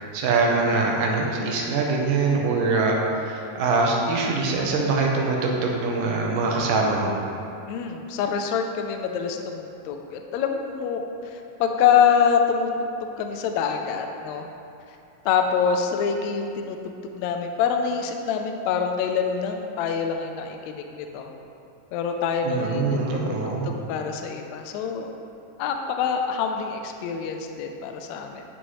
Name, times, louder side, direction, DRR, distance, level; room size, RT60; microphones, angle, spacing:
voice 1, 0.0-7.2 22.4-23.8, right 3 dB, 80° right, -1 dB, 2.4 m, -23 dB
voice 2, 7.7-12.7 13.0-14.5 15.2-16.8 17.0-21.3 21.9-23.3 23.6-25.1 25.6-28.4, left 7 dB, 85° left, 4 dB, 1.6 m, -25 dB
11.0 x 6.2 x 3.1 m, 2.6 s
omnidirectional pair, 3.8 m